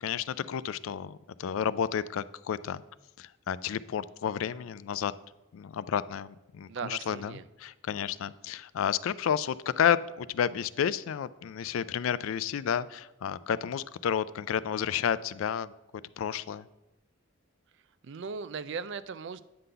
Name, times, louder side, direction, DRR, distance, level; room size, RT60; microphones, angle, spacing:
voice 1, 0.0-2.8 3.2-5.1 5.5-15.7 16.2-16.7, left 8 dB, 80° left, 16 dB, 0.3 m, -31 dB
voice 2, 6.7-7.4 18.0-19.4, right 5 dB, 60° right, 15 dB, 0.4 m, -38 dB
9.5 x 3.8 x 6.7 m, 0.95 s
head